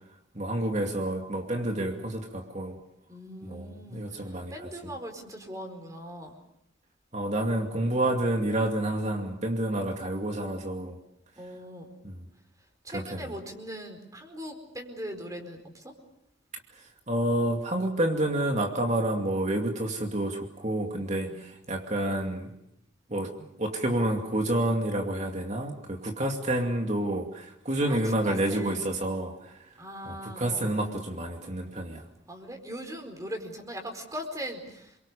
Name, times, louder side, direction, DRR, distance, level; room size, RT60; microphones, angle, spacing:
voice 1, 0.3-2.8 3.4-4.9 7.1-11.0 12.0-12.2 12.9-13.4 17.1-22.5 23.1-29.5 30.0-32.1, right 1 dB, 40° right, 2 dB, 2.5 m, -29 dB
voice 2, 3.1-4.0 4.5-6.3 11.4-11.9 12.8-15.6 21.0-21.3 27.8-28.0 28.2-28.8 29.8-30.7 32.3-34.9, equal, 20° right, 4 dB, 4.7 m, -40 dB
28.5 x 23.5 x 6.9 m, 0.78 s
head